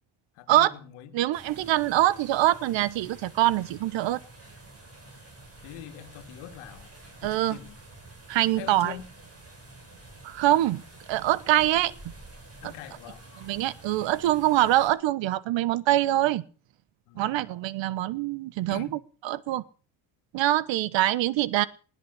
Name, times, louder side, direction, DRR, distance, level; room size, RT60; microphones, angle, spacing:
voice 1, 0.4-1.2 5.6-6.9 7.2-7.8 8.5-9.1 12.6-13.2 17.1-17.5 18.7-19.0, left 11 dB, 75° left, 9 dB, 2.1 m, -43 dB
voice 2, 1.1-4.2 7.2-7.6 8.3-8.9 10.2-10.8 11.1-12.1 13.4-16.4 17.2-18.9 19.2-19.6 20.3-21.7, right 14 dB, 60° right, 21 dB, 1.1 m, -24 dB
sound 1, 1.3-14.9, right 2 dB, 30° right, 7.3 m, -49 dB
19.5 x 8.6 x 6.8 m, 0.39 s
supercardioid pair, 75°, 50 cm